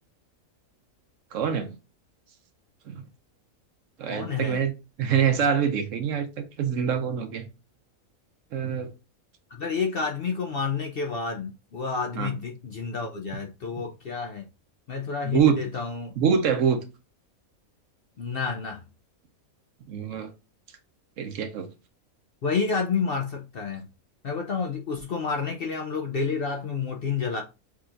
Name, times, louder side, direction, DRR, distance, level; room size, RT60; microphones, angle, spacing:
voice 1, 1.3-1.8 2.9-3.0 4.0-4.7 5.0-7.5 8.5-8.9 12.2-12.3 15.2-15.6 16.2-16.8 19.9-20.3 21.2-21.7, right 7 dB, 65° right, 1.0 m, -25 dB
voice 2, 4.1-4.6 9.5-14.4 14.9-16.1 18.2-18.8 22.4-23.9 24.2-27.4, left 5 dB, 55° left, 0.6 m, -29 dB
6.1 x 2.9 x 2.5 m
omnidirectional pair, 1.5 m